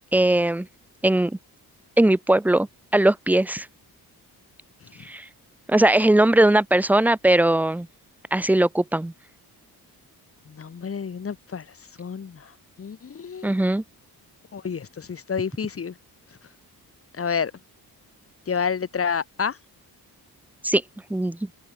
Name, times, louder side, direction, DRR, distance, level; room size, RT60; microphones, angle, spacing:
voice 1, 0.1-0.7 1.0-1.4 2.0-2.7 2.9-3.7 5.0-5.3 5.7-7.9 8.3-9.1 13.4-13.8 20.6-20.8 21.1-21.5, right 1 dB, 5° right, 0.4 m, -19 dB
voice 2, 10.5-11.6 12.0-12.5 12.8-13.5 14.5-15.9 17.2-17.5 18.5-19.6, left 6 dB, 35° left, 2.8 m, -29 dB
open air
wide cardioid pair, 165°, 37 cm